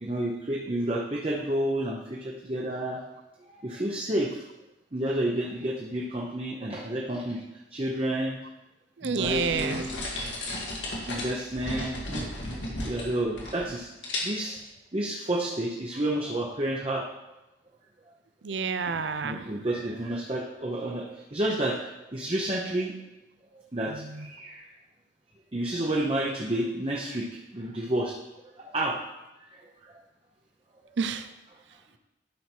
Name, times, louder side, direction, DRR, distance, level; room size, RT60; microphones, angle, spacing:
voice 1, 0.0-3.0 3.6-4.3 4.9-7.4 7.7-8.4 9.0-9.9 11.1-12.2 12.8-13.9 14.2-14.6 14.9-17.1 19.2-21.1 21.3-21.8 22.1-22.9 23.7-23.9 24.2-24.6 25.5-27.3 27.5-28.1 28.6-29.0, right 1 dB, 30° right, -2 dB, 0.8 m, -30 dB
voice 2, 9.0-9.8 18.4-19.5 23.9-24.3 31.0-31.3, right 5 dB, 80° right, 11 dB, 0.6 m, -29 dB
sound 1, 9.2-13.8 14.0-14.6, left 1 dB, 85° left, 1.9 m, -35 dB
11.5 x 4.6 x 4.5 m, 0.98 s
head